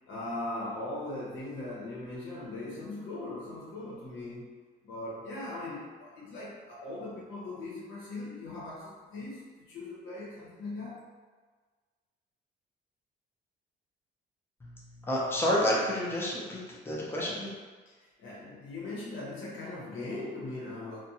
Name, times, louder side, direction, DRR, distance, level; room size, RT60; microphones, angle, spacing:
voice 1, 0.1-4.5 4.8-11.1 18.0-21.0, left 2 dB, 85° left, -7 dB, 1.0 m, -39 dB
voice 2, 14.6-17.5, left 1 dB, 10° left, -4 dB, 0.6 m, -30 dB
2.5 x 2.2 x 2.7 m, 1.4 s
cardioid pair, 90°, 20 cm